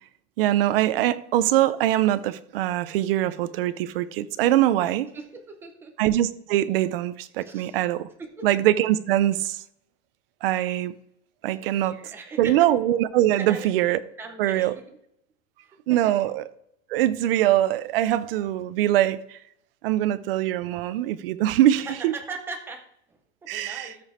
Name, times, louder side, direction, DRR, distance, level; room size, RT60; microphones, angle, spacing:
voice 1, 0.4-5.1 6.0-8.1 8.4-9.6 10.4-10.9 11.4-12.1 12.4-14.0 14.4-14.7 15.9-16.4 16.9-19.4 19.8-22.1 23.5-24.0, right 13 dB, 55° right, 0.6 m, -23 dB
voice 2, 5.1-6.0 7.4-7.8 8.2-8.5 11.6-12.7 13.4-13.7 14.2-15.0 15.6-16.3 21.8-24.0, right 3 dB, 5° right, 0.6 m, -40 dB
13.5 x 5.1 x 4.3 m
supercardioid pair, 180°, 35 cm